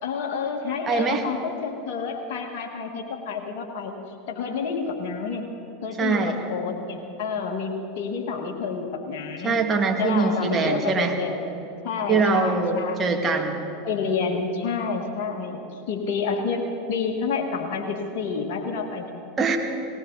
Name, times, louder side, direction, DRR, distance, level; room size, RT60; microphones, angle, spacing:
voice 1, 0.0-4.0 4.3-5.4 5.8-9.6 10.0-11.5 11.8-13.0 13.8-16.6 16.9-19.2, left 5 dB, 60° left, 2 dB, 1.7 m, -29 dB
voice 2, 0.9-1.2 6.0-6.3 9.4-11.2 12.1-13.6 19.4-19.6, right 4 dB, 25° right, 2 dB, 2.1 m, -23 dB
19.0 x 18.0 x 4.1 m, 2.8 s
hypercardioid pair, 90°, 0 cm